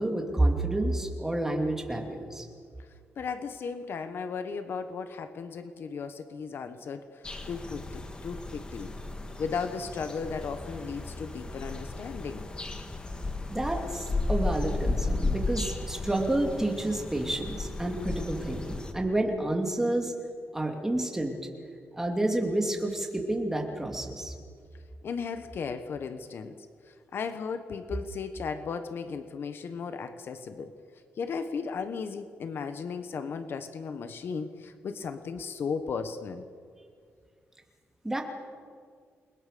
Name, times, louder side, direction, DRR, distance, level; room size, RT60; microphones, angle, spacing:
voice 1, 0.0-2.5 13.5-20.1 20.5-21.4 21.9-24.3 38.0-38.2, right 1 dB, 10° right, 2 dB, 2.8 m, -29 dB
voice 2, 3.2-8.9 9.4-12.5 25.0-30.7 31.2-36.4, left 5 dB, 50° left, 10 dB, 1.2 m, -36 dB
sound 1, 7.2-18.9, left 2 dB, 20° left, 1.7 m, -34 dB
29.0 x 21.5 x 6.9 m, 2.1 s
wide cardioid pair, 170°, 5 cm